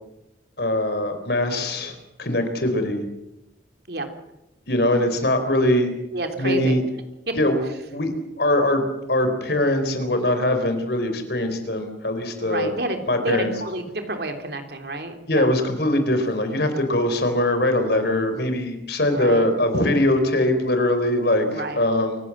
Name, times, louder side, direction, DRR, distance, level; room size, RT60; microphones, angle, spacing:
voice 1, 0.6-1.9 2.2-3.0 4.7-5.9 6.4-6.8 7.4-7.6 7.9-8.1 8.4-8.8 9.1-12.7 13.1-13.5 15.3-22.2, left 1 dB, 60° left, 8 dB, 4.1 m, -22 dB
voice 2, 6.1-6.8 7.3-7.4 12.4-15.6 19.1-19.5 21.5-21.8, right 1 dB, 55° right, 5 dB, 3.2 m, -29 dB
28.0 x 16.0 x 7.4 m, 0.91 s
head